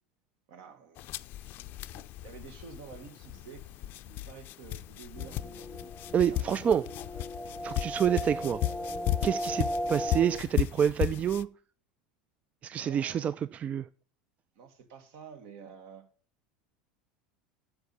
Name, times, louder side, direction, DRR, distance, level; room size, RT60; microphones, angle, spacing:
voice 1, 0.5-1.1 1.4-6.0 6.2-7.0 9.6-9.7 12.7-13.4 14.6-16.1, right 6 dB, 60° right, 2.0 m, -50 dB
sound 1, 1.0-11.5, left 14 dB, 50° left, 0.5 m, -36 dB
sound 2, 5.2-10.4, equal, 5° left, 0.7 m, -37 dB
voice 2, 6.1-6.8 7.6-8.6 9.2-11.5 12.6-13.9, right 9 dB, 30° right, 0.4 m, -28 dB
8.0 x 6.9 x 7.0 m
hypercardioid pair, 85°, 4 cm